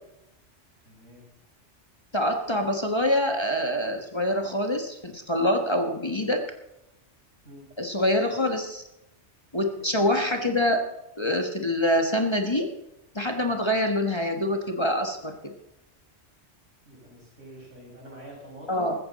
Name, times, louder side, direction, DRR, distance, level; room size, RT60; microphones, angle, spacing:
voice 1, 0.8-1.2 7.4-7.7 9.7-9.9 16.8-18.9, equal, 85° right, -3 dB, 6.5 m, -45 dB
voice 2, 2.1-6.4 7.8-8.8 9.5-10.8 11.2-12.7 13.1-15.5 18.7-18.9, left 1 dB, 25° left, 4 dB, 1.2 m, -25 dB
15.0 x 14.0 x 4.1 m, 0.87 s
omnidirectional pair, 1.2 m